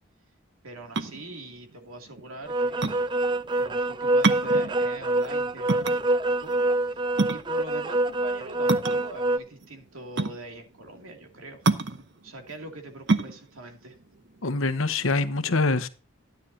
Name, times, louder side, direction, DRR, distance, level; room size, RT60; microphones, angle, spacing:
voice 1, 0.6-2.8 3.6-6.5 6.8-7.0 7.3-11.6 12.0-14.0, right 2 dB, 90° right, 2.6 m, -43 dB
sound 1, 0.8-15.2, right 3 dB, 55° right, 0.8 m, -29 dB
sound 2, 2.5-9.4, right 2 dB, 20° right, 0.4 m, -25 dB
voice 2, 14.4-15.9, left 3 dB, 80° left, 1.0 m, -24 dB
11.5 x 9.9 x 2.8 m
head